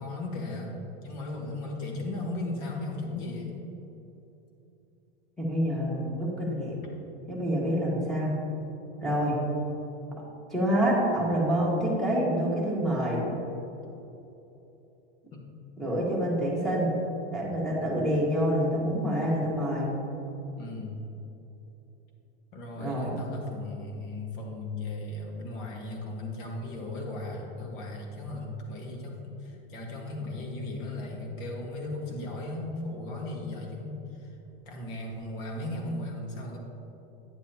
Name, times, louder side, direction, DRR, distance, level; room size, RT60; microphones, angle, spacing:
voice 1, 0.0-3.5 15.3-15.4 20.6-21.0 22.5-34.4 34.6-36.6, left 2 dB, 55° left, 0 dB, 1.7 m, -36 dB
voice 2, 5.4-6.8 7.3-8.4 9.0-9.4 10.5-13.2 15.8-16.9 17.3-19.9 22.8-23.1, equal, ahead, -5 dB, 1.6 m, -27 dB
9.8 x 7.8 x 2.9 m, 3.0 s
supercardioid pair, 150°, 30 cm